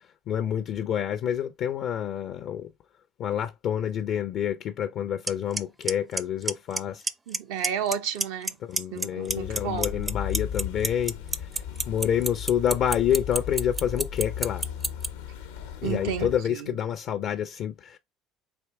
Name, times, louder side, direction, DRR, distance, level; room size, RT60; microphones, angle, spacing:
voice 1, 0.3-2.7 3.2-7.0 8.6-14.6 15.8-18.0, left 9 dB, 55° left, 0.4 m, -28 dB
Clock, 5.3-5.4 5.6-5.9 6.2-6.8 7.1-7.4 7.6-8.5 8.8-15.1, right 3 dB, 20° right, 0.5 m, -26 dB
voice 2, 7.3-8.5 8.9-10.1 15.8-16.8, right 8 dB, 75° right, 0.7 m, -32 dB
sound 1, 9.3-16.4, left 8 dB, 90° left, 0.8 m, -36 dB
4.4 x 2.8 x 3.4 m
hypercardioid pair, 80°, 0 cm